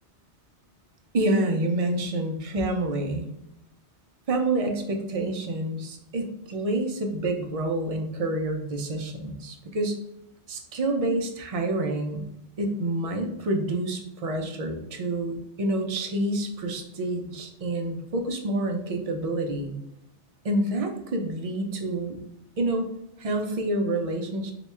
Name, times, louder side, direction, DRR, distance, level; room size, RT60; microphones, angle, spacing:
voice 1, 1.1-3.3 4.3-10.0 10.5-12.2 12.6-19.8 20.4-22.2 22.6-22.9 23.2-24.5, right 1 dB, 50° right, 3 dB, 0.4 m, -28 dB
2.9 x 2.3 x 4.1 m, 0.82 s
omnidirectional pair, 1.2 m